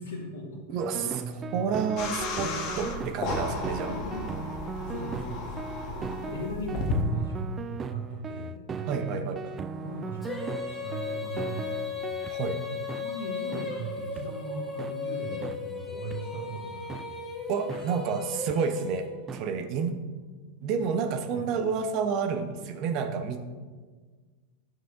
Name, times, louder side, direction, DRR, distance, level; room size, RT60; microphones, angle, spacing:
voice 1, 0.0-1.8 3.6-4.3 4.6-5.4 5.8-8.9 9.8-12.4 12.7-17.9 21.3-21.4, right 1 dB, 70° left, -6 dB, 1.6 m, -39 dB
voice 2, 0.7-1.1 1.5-2.5 2.8-3.9 8.9-9.5 12.3-12.6 17.5-19.9 20.6-23.4, right 6 dB, 45° right, 6 dB, 0.8 m, -29 dB
sound 1, 0.8-12.3 12.9-13.0 13.5-13.7 14.2-14.3 14.8-14.9 15.4-15.6 16.1-16.2 16.9-17.0 17.7-17.8 18.5-18.6 19.3-19.4, right 5 dB, 25° right, 0.4 m, -38 dB
sound 2, 2.0-7.0, left 3 dB, 45° left, 1.2 m, -34 dB
Female singing, 10.2-19.4, left 4 dB, 10° left, 2.0 m, -36 dB
11.0 x 6.4 x 2.6 m, 1.5 s
figure-of-eight pair, 90°, 0 cm